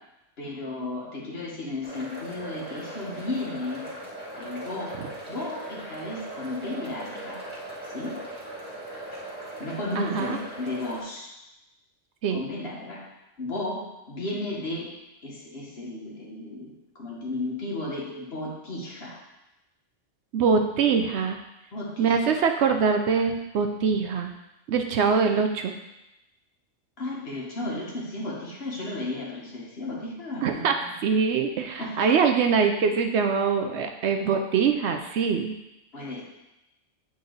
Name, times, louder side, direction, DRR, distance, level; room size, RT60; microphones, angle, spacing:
voice 1, 0.4-3.8 4.4-4.9 5.3-7.4 7.9-8.1 9.6-11.3 12.3-13.0 13.4-13.8 14.1-14.9 15.2-19.2 21.7-22.2 27.0-30.9 31.8-32.2 35.9-36.2, left 2 dB, 55° left, -3 dB, 1.6 m, -34 dB
sound 1, 1.8-11.0, right 1 dB, 10° right, 1.6 m, -39 dB
voice 2, 10.0-10.4 12.2-12.4 20.3-21.4 22.0-24.3 24.7-25.7 30.4-30.7 31.0-35.5, right 5 dB, 70° right, 5 dB, 0.8 m, -23 dB
8.2 x 4.0 x 3.9 m, 0.93 s
omnidirectional pair, 1.3 m